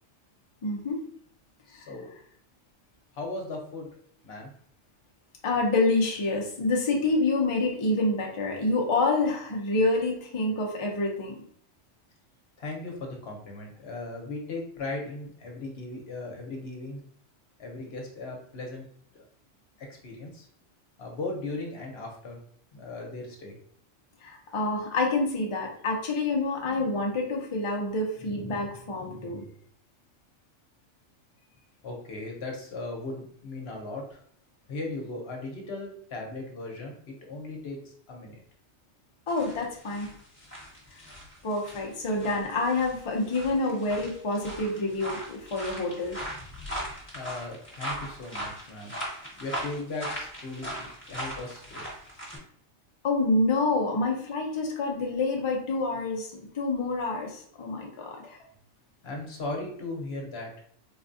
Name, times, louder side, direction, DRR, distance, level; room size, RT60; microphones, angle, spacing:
voice 1, 0.6-1.0 1.7-1.9 5.4-11.4 24.2-29.4 39.3-40.1 41.4-46.2 53.0-58.4, left 2 dB, 40° left, 0 dB, 0.5 m, -27 dB
voice 2, 1.7-2.1 3.1-3.9 4.2-4.5 12.6-17.0 17.6-18.8 19.1-19.3 19.8-20.5 21.0-22.4 22.7-23.6 31.8-34.2 34.7-38.4 47.1-48.9 49.4-51.8 58.2-58.5 59.0-60.5, left 2 dB, 55° left, 1 dB, 1.0 m, -37 dB
sound 1, 39.3-52.4, equal, 10° left, 1.2 m, -39 dB
4.0 x 2.3 x 2.6 m, 0.62 s
omnidirectional pair, 1.4 m